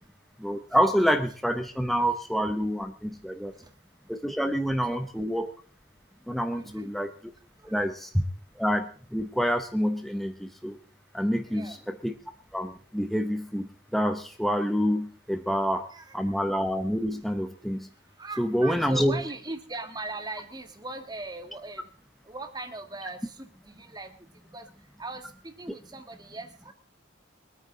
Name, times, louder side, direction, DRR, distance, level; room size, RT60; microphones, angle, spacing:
voice 1, 0.4-3.5 4.1-5.6 6.3-7.1 7.6-8.2 8.6-10.8 11.1-12.1 12.5-15.9 16.1-17.9 18.4-19.2, equal, ahead, 6 dB, 0.8 m, -27 dB
voice 2, 6.5-6.9 7.6-7.8 11.5-11.8 15.9-16.3 18.2-21.8 22.3-24.1 24.5-24.7 25.0-26.7, right 2 dB, 20° right, 7 dB, 1.6 m, -39 dB
23.5 x 9.5 x 3.8 m, 0.41 s
head